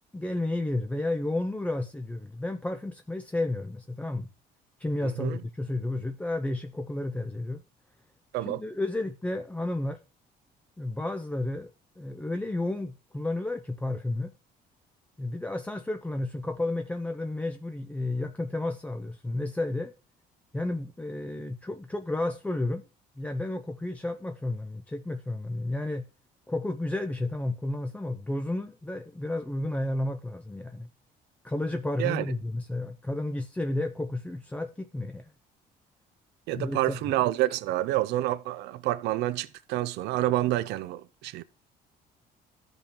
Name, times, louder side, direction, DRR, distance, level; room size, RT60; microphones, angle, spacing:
voice 1, 0.1-4.3 4.8-7.6 8.4-10.0 10.8-11.7 12.0-14.3 15.2-19.9 20.5-22.8 23.2-26.0 26.5-30.9 31.4-35.3 36.6-37.1, left 2 dB, 10° left, 0.5 m, -32 dB
voice 2, 5.0-5.4 8.3-8.6 32.0-32.2 36.5-41.4, right 15 dB, 85° right, 0.5 m, -28 dB
14.0 x 5.3 x 2.9 m
cardioid pair, 110°, 17 cm